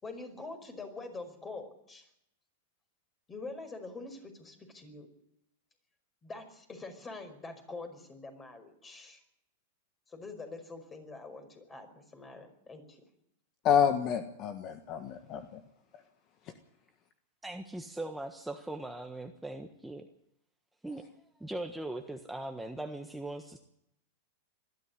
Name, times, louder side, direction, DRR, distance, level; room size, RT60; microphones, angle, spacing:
voice 1, 0.0-2.1 3.3-5.1 6.2-9.2 10.1-13.0, left 3 dB, 20° left, 7 dB, 5.1 m, -45 dB
voice 2, 13.6-15.4, left 8 dB, 40° left, 8 dB, 1.5 m, -28 dB
voice 3, 17.4-20.1 20.8-21.0 21.4-23.6, right 2 dB, 5° right, 4 dB, 1.4 m, -40 dB
19.5 x 13.5 x 9.7 m, 0.79 s
hypercardioid pair, 115°, 0 cm